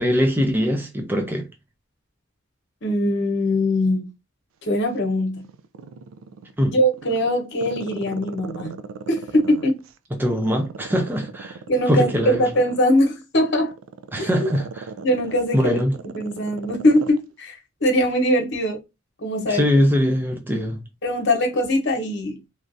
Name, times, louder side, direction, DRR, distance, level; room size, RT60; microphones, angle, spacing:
voice 1, 0.0-1.4 6.6-6.8 10.2-11.6 11.9-12.5 14.1-14.8 15.5-15.9 19.5-20.8, equal, 10° right, 0.5 m, -21 dB
voice 2, 2.8-4.1 4.6-5.5 6.6-8.8 9.1-9.8 11.7-13.7 14.2-14.3 15.0-15.8 16.1-18.8 19.2-19.7 21.0-22.4, left 1 dB, 60° left, 1.0 m, -21 dB
Growling, 4.8-6.5 6.9-9.9 10.4-17.2 17.5-17.6, right 5 dB, 80° right, 0.3 m, -37 dB
3.3 x 2.5 x 2.6 m
head